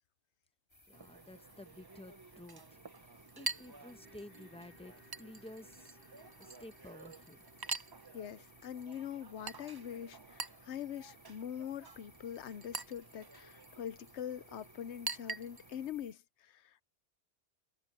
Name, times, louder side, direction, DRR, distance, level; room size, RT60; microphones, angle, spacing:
sound 1, 0.7-16.1, left 1 dB, 25° left, 3.4 m, -63 dB
voice 1, 0.9-7.5, left 1 dB, 5° left, 0.9 m, -53 dB
Chink clink, 0.9-15.9, right 4 dB, 30° right, 0.5 m, -47 dB
sound 2, 3.1-13.2 13.5-13.6, left 1 dB, 55° left, 8.0 m, -67 dB
voice 2, 8.1-16.8, left 9 dB, 90° left, 1.0 m, -43 dB
omnidirectional pair, 1.1 m